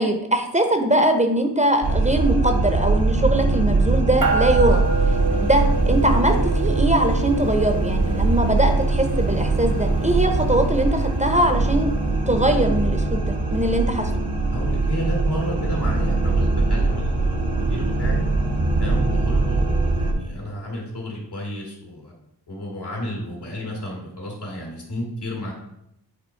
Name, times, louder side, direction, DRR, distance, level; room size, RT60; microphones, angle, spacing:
voice 1, 0.0-4.8 5.1-11.9 12.3-14.1, right 1 dB, 15° right, 5 dB, 0.7 m, -21 dB
sound 1, 1.8-20.1, right 3 dB, 80° right, 1.5 m, -21 dB
sound 2, 4.2-11.9, right 3 dB, 50° right, 0.8 m, -30 dB
voice 2, 14.5-18.2 18.8-22.1 22.5-25.5, left 1 dB, 70° left, -2 dB, 2.5 m, -32 dB
8.1 x 3.0 x 4.4 m, 0.82 s
wide cardioid pair, 75°, 41 cm